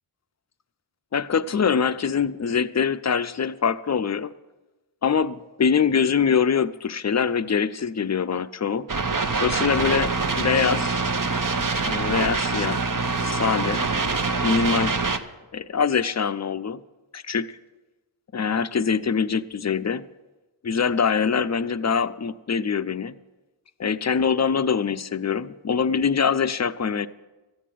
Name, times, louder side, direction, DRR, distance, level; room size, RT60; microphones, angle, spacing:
voice 1, 1.1-4.3 5.0-8.9 9.4-11.0 11.8-12.8 13.2-13.8 14.4-15.0 15.5-16.8 17.1-17.6 18.3-20.0 20.6-23.2 23.8-27.1, left 6 dB, 35° left, 14 dB, 0.6 m, -24 dB
sound 1, 8.9-15.2, right 4 dB, 40° right, 1.0 m, -25 dB
13.5 x 8.3 x 7.7 m, 1.1 s
cardioid pair, 50°, 49 cm